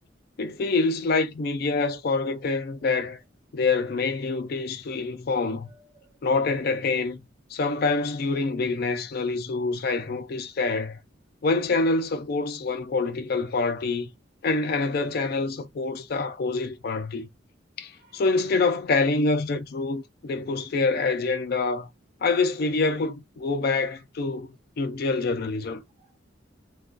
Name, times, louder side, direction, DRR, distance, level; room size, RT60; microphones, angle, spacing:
voice 1, 0.4-3.2 3.5-5.7 6.2-7.2 7.5-11.0 11.4-14.1 14.4-17.3 17.8-21.9 22.2-25.8, left 3 dB, 50° left, 0.4 m, -26 dB
voice 2, 5.5-6.6 18.0-18.6 23.6-23.9, right 2 dB, 50° right, 1.0 m, -59 dB
2.3 x 2.2 x 3.6 m
head